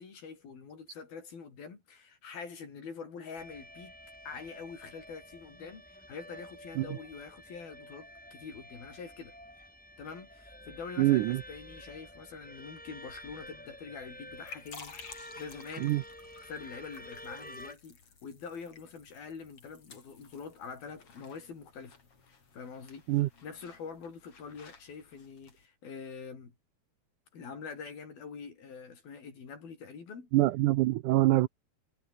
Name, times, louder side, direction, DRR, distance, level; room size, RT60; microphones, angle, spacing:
voice 1, 0.0-3.9 4.3-9.4 10.0-16.0 16.4-22.0 22.3-23.1 23.4-26.6 27.3-30.3, left 5 dB, 70° left, 6.8 m, -45 dB
sound 1, 3.4-17.7, equal, ahead, 4.0 m, -50 dB
voice 2, 11.0-11.4 15.8-16.0 23.1-23.3 30.3-31.5, right 17 dB, 85° right, 1.8 m, -25 dB
sound 2, 14.1-25.7, left 5 dB, 35° left, 4.5 m, -54 dB
omnidirectional pair, 4.5 m